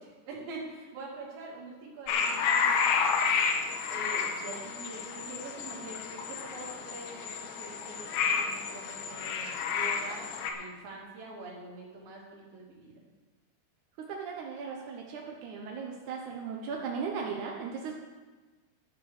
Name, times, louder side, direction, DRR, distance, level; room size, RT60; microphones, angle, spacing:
voice 1, 0.0-3.2 3.9-12.9, right 2 dB, 55° right, -4 dB, 4.4 m, -45 dB
sound 1, 2.1-10.5, left 6 dB, 90° left, 3.5 m, -30 dB
voice 2, 14.0-17.9, right 5 dB, 80° right, 0 dB, 1.7 m, -37 dB
11.5 x 9.1 x 6.6 m, 1.3 s
omnidirectional pair, 5.2 m